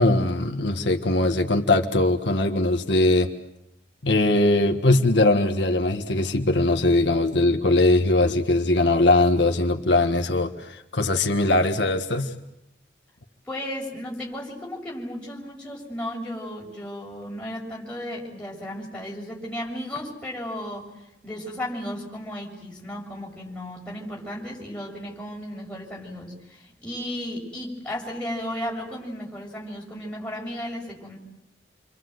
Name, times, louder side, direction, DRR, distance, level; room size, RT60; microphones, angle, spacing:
voice 1, 0.0-3.3 4.0-12.3, left 2 dB, 80° left, 5 dB, 1.7 m, -21 dB
voice 2, 13.5-20.9 21.2-31.2, left 1 dB, 5° left, -3 dB, 7.1 m, -34 dB
29.0 x 25.0 x 8.0 m, 0.87 s
head